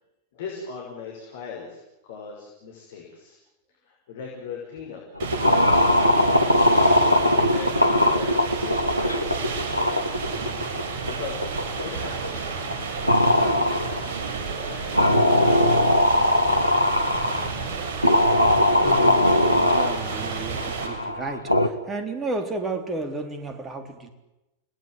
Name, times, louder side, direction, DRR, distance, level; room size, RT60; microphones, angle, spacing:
voice 1, 0.3-3.4 3.8-5.0 7.1-10.2 10.7-14.1 14.4-17.0, left 5 dB, 55° left, -1 dB, 6.3 m, -40 dB
sound 1, 5.2-12.3 12.7-12.8 13.1-14.2 14.9-17.5 18.0-21.7, left 1 dB, 90° left, 1.6 m, -20 dB
sound 2, 5.2-20.9, right 4 dB, 50° right, 6.6 m, -31 dB
voice 2, 18.8-24.1, right 3 dB, 20° right, 7 dB, 3.8 m, -33 dB
30.0 x 19.5 x 8.0 m, 0.96 s
figure-of-eight pair, 90°, 0 cm